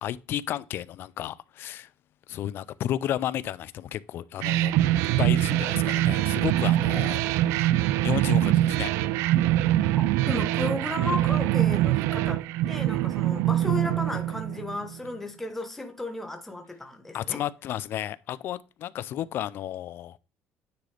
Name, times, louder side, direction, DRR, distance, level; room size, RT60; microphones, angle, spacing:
voice 1, 0.0-1.9 2.3-4.7 5.2-7.2 8.0-9.1 17.1-20.2, left 12 dB, 55° left, 0.4 m, -32 dB
sound 1, 4.4-14.9, right 14 dB, 85° right, 0.3 m, -24 dB
voice 2, 10.3-17.4, left 2 dB, 5° left, 1.0 m, -34 dB
9.5 x 3.8 x 3.3 m
cardioid pair, 140°, 5 cm